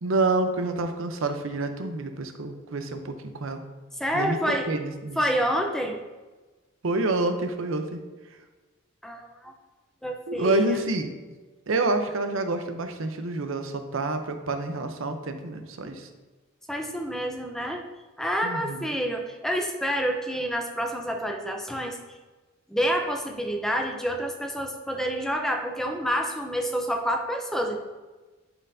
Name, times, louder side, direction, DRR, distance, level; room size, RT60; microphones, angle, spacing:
voice 1, 0.0-3.6 4.1-5.2 6.8-8.0 10.3-11.1 11.7-16.1 18.4-18.9, right 2 dB, 70° right, 7 dB, 0.7 m, -28 dB
voice 2, 4.0-4.7 5.2-6.0 9.0-9.5 10.0-10.8 16.7-17.8 18.2-22.0 22.7-27.8, equal, ahead, 3 dB, 0.5 m, -28 dB
11.0 x 4.4 x 2.6 m, 1.3 s
head